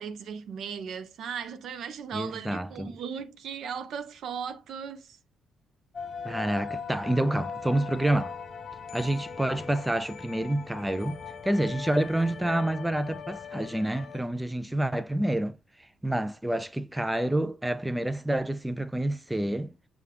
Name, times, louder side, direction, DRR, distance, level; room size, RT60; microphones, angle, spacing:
voice 1, 0.0-5.2, right 7 dB, 70° right, 0.6 m, -37 dB
voice 2, 2.1-2.9 6.2-8.4 8.9-15.6 16.0-19.7, right 1 dB, 10° right, 0.4 m, -28 dB
sound 1, 5.9-14.2, left 6 dB, 50° left, 0.5 m, -40 dB
6.7 x 2.3 x 3.3 m
cardioid pair, 90°, 0 cm